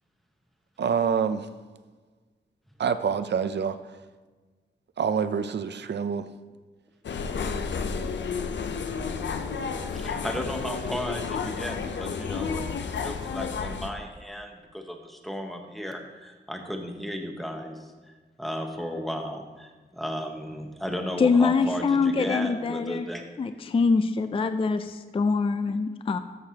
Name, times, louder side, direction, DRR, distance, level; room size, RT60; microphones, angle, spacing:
voice 1, 0.8-1.5 2.8-3.8 5.0-6.3, right 6 dB, 75° right, 11 dB, 0.5 m, -26 dB
sound 1, 7.0-13.9, left 5 dB, 90° left, 0.5 m, -31 dB
voice 2, 9.9-17.9 18.4-23.6, equal, ahead, 3 dB, 0.9 m, -35 dB
voice 3, 21.2-23.1 23.4-26.2, left 4 dB, 30° left, 9 dB, 0.3 m, -24 dB
13.0 x 6.6 x 2.8 m, 1.3 s
wide cardioid pair, 125°, 18 cm